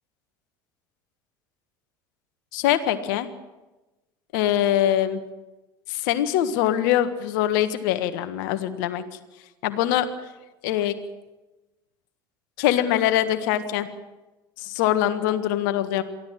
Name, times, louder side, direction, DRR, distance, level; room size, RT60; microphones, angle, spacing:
voice 1, 2.5-3.3 4.3-5.2 5.9-9.0 9.6-10.1 10.6-11.0 12.6-13.9 14.6-16.0, left 12 dB, 65° left, 10 dB, 1.6 m, -23 dB
23.5 x 15.0 x 7.6 m, 1.1 s
hypercardioid pair, 70°, 11 cm